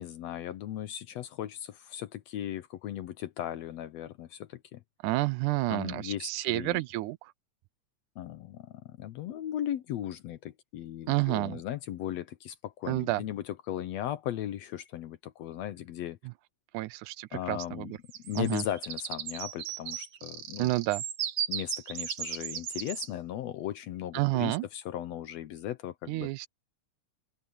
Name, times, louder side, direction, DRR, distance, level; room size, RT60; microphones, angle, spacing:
voice 1, 0.0-4.8 5.7-6.8 8.2-16.2 17.3-17.9 18.2-20.7 21.5-26.3, left 11 dB, 70° left, 1.7 m, -37 dB
voice 2, 5.0-7.3 11.1-11.6 12.9-13.2 16.7-18.0 18.4-18.6 20.6-21.0 24.1-24.7 26.1-26.5, right 19 dB, 85° right, 2.0 m, -30 dB
sound 1, 18.1-23.1, right 10 dB, 65° right, 2.6 m, -36 dB
open air
omnidirectional pair, 3.5 m